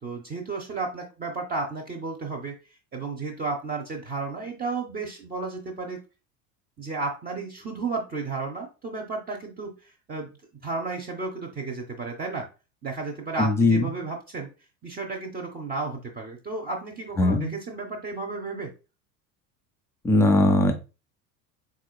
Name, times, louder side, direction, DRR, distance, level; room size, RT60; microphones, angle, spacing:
voice 1, 0.0-2.6 2.9-6.0 6.8-10.3 10.6-12.5 12.8-14.5 14.8-18.7, right 3 dB, 20° right, 1 dB, 0.7 m, -33 dB
voice 2, 13.4-13.9 17.2-17.5 20.0-20.7, left 2 dB, 5° left, 4 dB, 0.4 m, -20 dB
4.9 x 3.6 x 2.3 m, 0.30 s
figure-of-eight pair, 75°, 48 cm